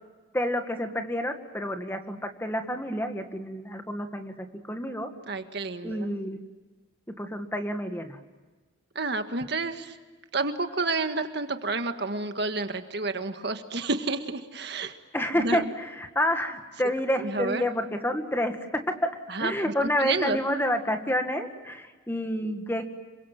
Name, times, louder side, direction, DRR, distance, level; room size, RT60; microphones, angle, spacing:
voice 1, 0.3-4.3 4.6-5.1 5.8-6.4 7.2-8.2 15.1-19.1 19.4-22.8, left 1 dB, 10° left, 6 dB, 1.8 m, -29 dB
voice 2, 5.3-6.1 8.9-10.0 10.3-15.0 15.4-15.7 17.2-17.6 19.3-20.4, right 3 dB, 55° right, 7 dB, 1.7 m, -30 dB
27.5 x 24.0 x 7.6 m, 1.3 s
head